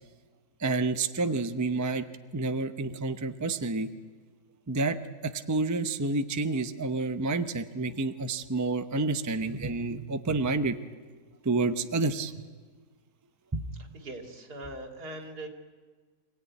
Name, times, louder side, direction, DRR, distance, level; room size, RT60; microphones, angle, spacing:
voice 1, 0.6-2.1 2.3-3.9 4.7-5.0 5.2-10.8 11.4-12.5 13.5-13.7, right 3 dB, 20° right, 9 dB, 0.5 m, -29 dB
voice 2, 13.9-15.5, right 1 dB, 75° right, 3 dB, 3.0 m, -41 dB
26.0 x 17.0 x 9.6 m, 1.5 s
omnidirectional pair, 1.7 m